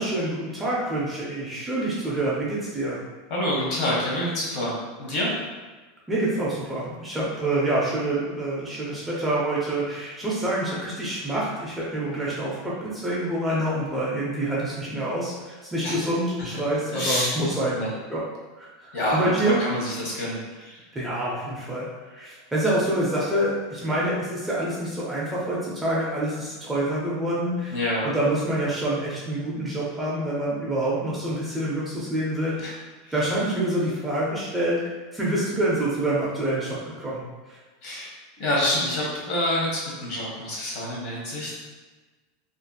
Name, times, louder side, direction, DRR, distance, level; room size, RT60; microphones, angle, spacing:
voice 1, 0.0-3.0 6.1-17.8 18.1-18.2 18.6-19.6 20.9-27.8 28.0-32.7 33.1-37.2 37.5-37.6, right 1 dB, 10° right, -7 dB, 0.4 m, -27 dB
voice 2, 3.3-5.3 13.5-13.6 15.8-16.1 16.5-16.6 16.9-17.4 17.7-17.9 18.9-20.8 27.7-28.1 32.6-32.7 33.0-33.1 37.8-41.5, left 1 dB, 45° left, -4 dB, 0.8 m, -27 dB
2.6 x 2.4 x 2.2 m, 1.3 s
supercardioid pair, 165°, 0 cm